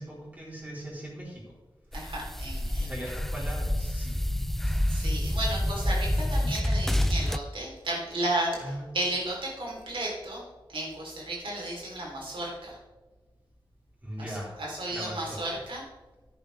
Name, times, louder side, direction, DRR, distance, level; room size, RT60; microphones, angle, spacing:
voice 1, 0.0-1.4 2.8-4.2 8.6-8.9 14.0-14.6 14.9-15.4, equal, 15° right, -5 dB, 3.8 m, -39 dB
sound 1, 1.9-7.4, left 1 dB, 5° left, 0.3 m, -28 dB
voice 2, 1.9-2.9 4.9-10.4 10.7-12.8 14.2-15.8, right 1 dB, 65° right, -3 dB, 3.6 m, -34 dB
10.0 x 9.9 x 3.4 m, 1.2 s
wide cardioid pair, 125°, 9 cm